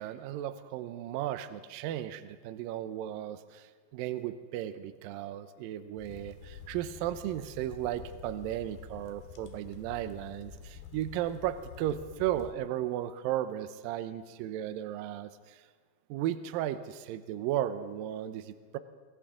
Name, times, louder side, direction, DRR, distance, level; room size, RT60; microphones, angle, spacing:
voice 1, 0.0-15.6 16.1-18.8, right 12 dB, 90° right, 11 dB, 2.0 m, -35 dB
sound 1, 6.0-12.5, left 6 dB, 75° left, 3.2 m, -48 dB
25.5 x 15.5 x 3.6 m, 1.5 s
omnidirectional pair, 4.9 m